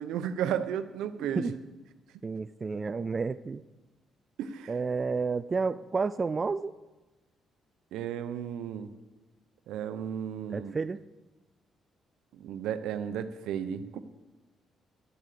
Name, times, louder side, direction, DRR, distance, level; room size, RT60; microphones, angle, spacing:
voice 1, 0.0-1.4 4.4-4.8 7.9-8.9 9.7-10.8 12.3-14.0, right 9 dB, 90° right, 10 dB, 0.8 m, -34 dB
voice 2, 2.2-3.6 4.7-6.7 10.5-11.0, right 4 dB, 35° right, 13 dB, 0.4 m, -30 dB
12.5 x 8.7 x 6.7 m, 1.1 s
cardioid pair, 90°, 0 cm